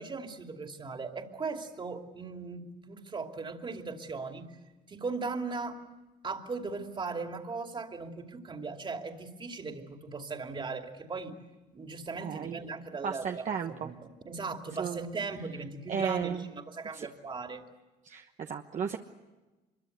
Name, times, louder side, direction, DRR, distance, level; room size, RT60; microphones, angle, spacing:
voice 1, 0.0-4.6 4.9-5.8 6.2-11.4 11.7-13.5 13.8-14.0 14.3-17.6, right 4 dB, 30° right, 4 dB, 2.7 m, -38 dB
voice 2, 12.2-12.6 13.0-13.9 14.8-15.0 15.9-16.5 16.9-17.1 18.0-19.0, right 7 dB, 45° right, 4 dB, 1.2 m, -34 dB
24.5 x 23.0 x 8.1 m, 1.2 s
cardioid pair, 110°, 17 cm